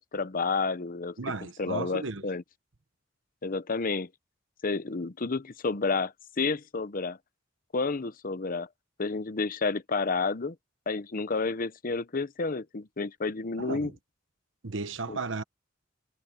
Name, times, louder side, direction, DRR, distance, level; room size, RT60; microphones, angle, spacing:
voice 1, 0.0-1.1 1.6-2.4 3.4-4.1 4.6-7.2 7.7-8.7 9.0-10.6 10.9-13.9 15.1-15.2, left 4 dB, 45° left, 0.8 m, -30 dB
voice 2, 1.2-2.2 13.6-13.9 14.6-15.4, right 4 dB, 75° right, 1.1 m, -34 dB
head